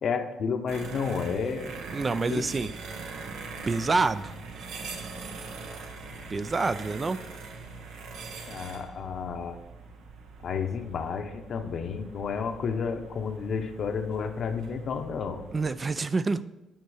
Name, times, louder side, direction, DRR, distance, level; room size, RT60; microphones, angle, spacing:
voice 1, 0.0-1.8 2.3-2.4 8.5-9.6 10.4-15.4, left 6 dB, 60° left, 6 dB, 0.9 m, -31 dB
sound 1, 0.7-15.7, right 4 dB, 85° right, 1.1 m, -42 dB
voice 2, 1.9-2.7 3.7-4.3 6.3-7.2 15.5-16.4, right 3 dB, 30° right, 13 dB, 0.4 m, -27 dB
9.3 x 5.5 x 4.9 m, 0.99 s
cardioid pair, 90°, 0 cm